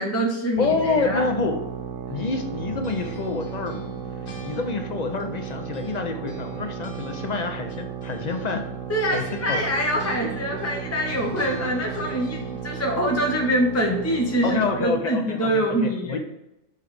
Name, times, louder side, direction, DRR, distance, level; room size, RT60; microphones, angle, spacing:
voice 1, 0.0-1.2 8.9-16.2, equal, 15° left, 0 dB, 0.7 m, -25 dB
voice 2, 0.6-1.7 2.1-3.8 4.4-8.7 9.1-9.6 14.4-16.2, left 4 dB, 50° left, 6 dB, 0.5 m, -27 dB
sound 1, 0.6-15.1, right 8 dB, 80° right, 1.0 m, -35 dB
sound 2, 2.5-6.0 6.3-12.7, left 1 dB, 85° left, 1.5 m, -43 dB
7.0 x 3.2 x 4.8 m, 0.87 s
omnidirectional pair, 1.4 m